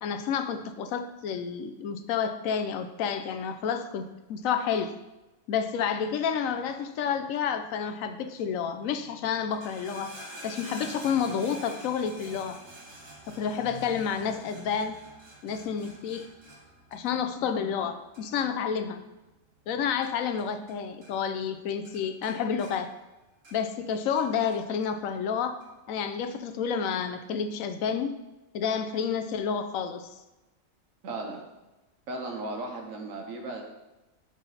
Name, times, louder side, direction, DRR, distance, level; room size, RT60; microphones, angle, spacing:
voice 1, 0.0-4.0 4.3-5.0 5.5-10.2 10.4-12.6 13.3-15.0 15.4-16.3 16.9-19.0 19.7-22.9 23.5-25.6 25.9-28.1 28.5-30.1, left 7 dB, 85° left, 9 dB, 1.0 m, -30 dB
sound 1, 9.4-20.8 21.0-21.6 21.8-23.8 24.2-24.9 25.6-25.7, right 1 dB, 70° right, 2.0 m, -48 dB
voice 2, 31.0-31.4 32.1-33.6, right 2 dB, 85° right, 2 dB, 1.4 m, -36 dB
10.5 x 3.9 x 4.1 m, 1.0 s
omnidirectional pair, 1.4 m